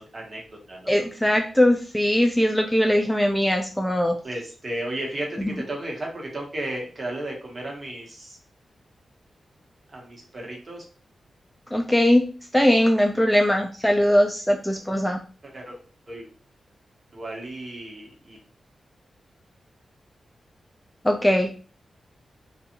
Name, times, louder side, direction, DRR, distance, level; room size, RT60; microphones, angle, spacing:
voice 1, 0.0-0.9 4.2-8.4 9.9-10.8 15.4-15.8 16.1-16.3 17.1-18.4, right 1 dB, 40° right, -1 dB, 1.0 m, -34 dB
voice 2, 0.9-4.2 11.7-12.3 12.5-15.2 21.0-21.5, left 1 dB, 5° left, 3 dB, 0.3 m, -20 dB
2.6 x 2.3 x 2.8 m, 0.38 s
cardioid pair, 80°, 0 cm